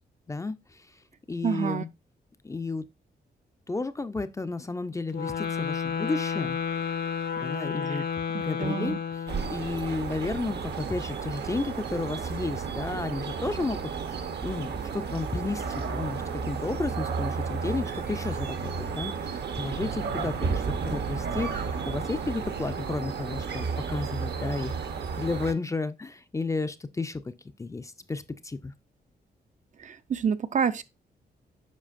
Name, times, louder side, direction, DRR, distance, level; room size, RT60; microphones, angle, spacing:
voice 1, 0.3-0.9 1.3-1.9 2.4-2.8 3.7-6.6 7.4-8.0 8.4-13.9 14.4-24.9 25.2-27.3 27.6-28.7, left 3 dB, 15° left, 0.4 m, -32 dB
voice 2, 1.4-1.8 7.8-8.0 8.3-9.0 29.8-30.8, right 7 dB, 45° right, 0.4 m, -28 dB
sound 1, 5.1-9.7, left 6 dB, 60° left, 0.7 m, -31 dB
sound 2, 9.3-25.5, right 5 dB, 70° right, 0.9 m, -32 dB
7.4 x 5.2 x 2.5 m
wide cardioid pair, 125°, 18 cm